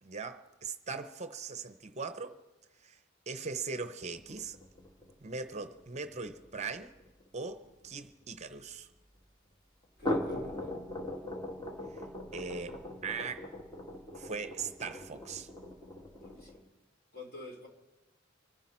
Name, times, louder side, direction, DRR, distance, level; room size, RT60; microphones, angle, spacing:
voice 1, 0.0-2.4 2.8-3.0 3.3-4.6 5.2-6.9 7.3-8.9 11.9-12.1 12.3-13.5 14.2-15.5, right 4 dB, 35° right, 0.7 m, -40 dB
sound 1, 4.1-8.7 9.8-16.6, left 1 dB, 20° left, 1.5 m, -40 dB
voice 2, 10.0-10.8 16.1-16.7 17.1-17.7, left 2 dB, 50° left, 3.0 m, -48 dB
25.5 x 10.0 x 4.3 m
head